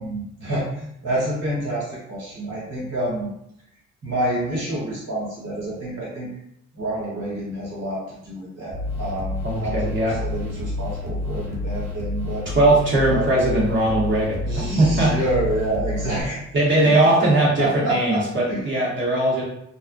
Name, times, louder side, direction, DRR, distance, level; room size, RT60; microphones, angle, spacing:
voice 1, 0.0-3.3 4.0-6.3 6.7-12.5 13.1-13.3 14.4-16.4 16.8-18.7, right 1 dB, 70° right, -8 dB, 1.4 m, -28 dB
sound 1, 8.7-16.2, left 2 dB, 20° left, 1.3 m, -29 dB
voice 2, 9.4-10.1 12.5-14.4 14.8-15.1 16.5-19.4, right 1 dB, 35° right, -5 dB, 0.9 m, -19 dB
2.5 x 2.1 x 2.5 m, 0.77 s
supercardioid pair, 60°, 32 cm